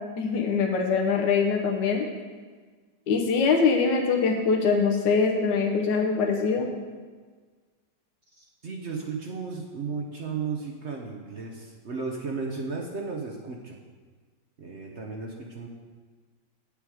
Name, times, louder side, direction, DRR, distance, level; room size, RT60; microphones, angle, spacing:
voice 1, 0.0-2.1 3.1-6.7, left 5 dB, 75° left, 1 dB, 1.5 m, -23 dB
voice 2, 8.3-13.8 14.6-15.7, right 4 dB, 50° right, 0 dB, 0.9 m, -34 dB
9.0 x 6.9 x 4.8 m, 1.5 s
omnidirectional pair, 1.9 m